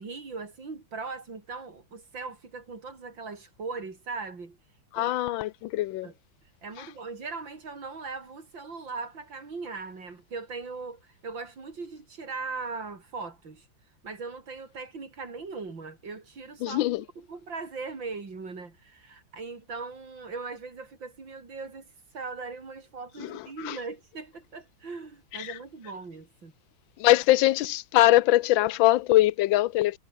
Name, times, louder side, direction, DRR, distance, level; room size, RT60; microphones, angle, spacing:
voice 1, 0.0-4.6 5.0-5.1 6.0-6.1 6.6-13.7 14.0-16.8 17.2-26.5, right 4 dB, 75° right, 4.6 m, -39 dB
voice 2, 4.9-6.1 6.8-6.9 16.6-17.0 23.2-23.8 25.3-25.6 27.0-30.0, left 15 dB, 90° left, 1.4 m, -23 dB
omnidirectional pair, 2.1 m